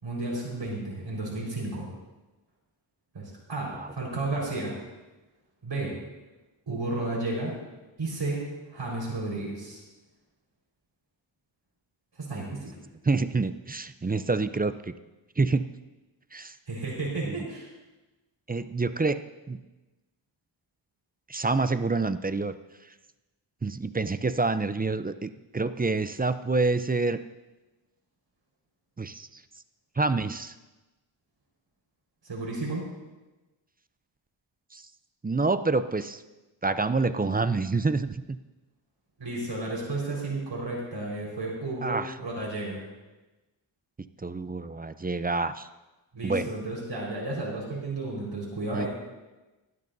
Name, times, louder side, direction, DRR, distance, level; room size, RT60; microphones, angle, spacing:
voice 1, 0.0-1.9 3.1-4.8 5.6-6.0 6.7-7.6 8.0-9.8 12.2-12.7 16.7-17.7 32.2-32.8 39.2-42.8 46.1-48.9, right 2 dB, 60° right, -4 dB, 4.8 m, -32 dB
voice 2, 13.0-14.7 15.4-15.7 16.3-16.6 17.3-17.4 18.5-19.2 19.5-19.6 21.3-22.6 23.6-27.2 29.0-29.3 30.0-30.5 34.7-34.8 35.2-36.2 36.6-38.4 41.8-42.1 44.2-45.7 46.2-46.5 48.7-48.9, right 3 dB, 20° right, 12 dB, 0.5 m, -27 dB
18.5 x 12.0 x 2.7 m, 1.1 s
cardioid pair, 60°, 49 cm